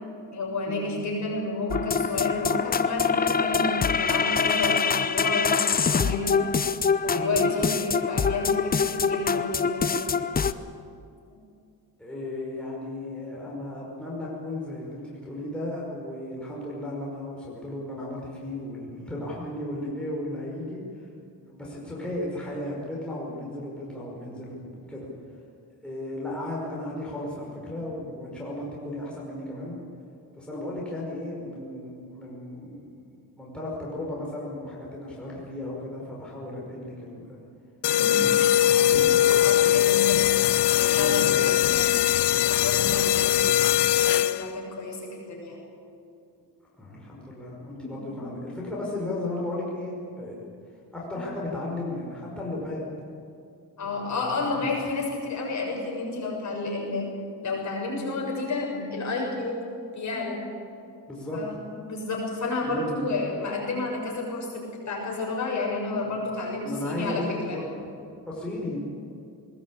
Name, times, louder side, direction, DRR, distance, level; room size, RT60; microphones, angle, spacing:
voice 1, 0.3-6.4 7.0-10.1 10.3-10.4 11.3-11.4 37.9-38.3 39.0-42.1 42.5-45.6 47.7-48.3 48.7-48.8 51.1-51.3 53.8-57.1 57.4-59.6 59.9-60.4 61.3-67.6, left 3 dB, 45° left, -2 dB, 6.9 m, -31 dB
sound 1, 1.7-10.5, left 6 dB, 20° left, 0.6 m, -25 dB
voice 2, 12.0-20.8 21.5-25.1 25.8-29.7 30.4-32.9 33.4-37.4 38.0-39.4 40.9-41.4 46.8-50.4 50.9-52.8 53.8-54.7 61.1-61.4 62.6-63.3 66.6-67.7 68.3-68.8, left 1 dB, ahead, -5 dB, 5.4 m, -35 dB
sound 2, 37.8-44.6, left 12 dB, 75° left, 0.7 m, -21 dB
20.5 x 20.0 x 8.7 m, 2.5 s
cardioid pair, 140°, 41 cm